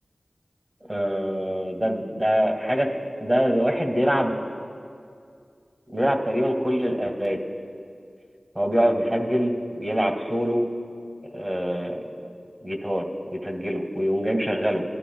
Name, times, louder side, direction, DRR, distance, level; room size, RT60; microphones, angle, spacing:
voice 1, 0.9-2.9 3.2-4.4 5.9-7.4 8.6-10.7 11.3-12.0 12.6-13.1 13.4-14.8, equal, 20° right, 1 dB, 1.9 m, -24 dB
23.0 x 13.0 x 2.3 m, 2.4 s
cardioid pair, 40°, 0 cm